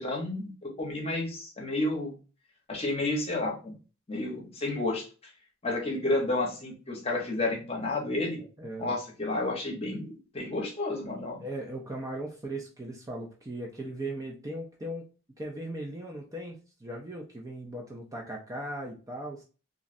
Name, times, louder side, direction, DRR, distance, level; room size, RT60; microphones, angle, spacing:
voice 1, 0.0-2.1 2.7-3.8 4.1-5.1 5.6-8.4 8.8-11.4, left 2 dB, 30° left, -1 dB, 0.8 m, -31 dB
voice 2, 8.6-8.9 11.4-15.0 15.4-19.4, right 1 dB, 15° right, 0 dB, 0.4 m, -38 dB
3.0 x 2.5 x 2.5 m, 0.35 s
head